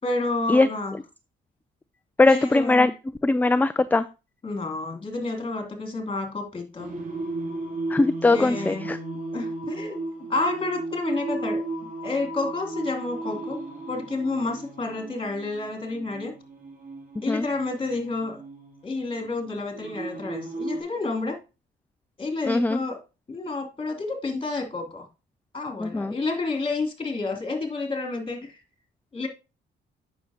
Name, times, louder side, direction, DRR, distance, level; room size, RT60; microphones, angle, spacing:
voice 1, 0.0-0.9 2.2-2.9 4.4-6.9 8.3-8.9 9.3-10.0 10.3-11.6 12.0-13.6 13.9-16.3 17.2-18.4 18.8-21.4 22.2-23.0 23.3-25.1 25.5-28.6 29.1-29.3, left 3 dB, 25° left, 2 dB, 3.0 m, -30 dB
voice 2, 2.2-2.9 3.2-4.0 7.9-9.0 17.3-17.4 22.5-22.8 25.8-26.1, left 2 dB, 10° left, 13 dB, 0.4 m, -20 dB
Singing, 6.8-20.8, right 2 dB, 40° right, 3.2 m, -35 dB
9.1 x 6.5 x 2.9 m, 0.28 s
cardioid pair, 90°, 20 cm